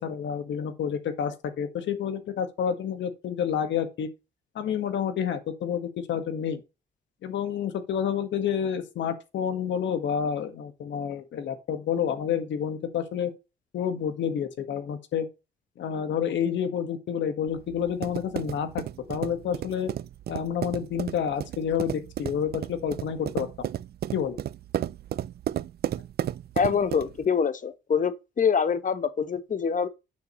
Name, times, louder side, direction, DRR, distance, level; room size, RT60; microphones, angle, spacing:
voice 1, 0.0-4.1 4.5-6.6 7.2-13.3 13.7-15.3 15.8-18.8 19.1-19.9 20.3-23.5 24.1-24.4, left 8 dB, 80° left, 1.7 m, -29 dB
sound 1, 17.5-27.2, right 11 dB, 60° right, 0.4 m, -33 dB
voice 2, 26.6-29.9, left 6 dB, 45° left, 1.1 m, -25 dB
9.3 x 6.6 x 3.1 m
cardioid pair, 80°, 19 cm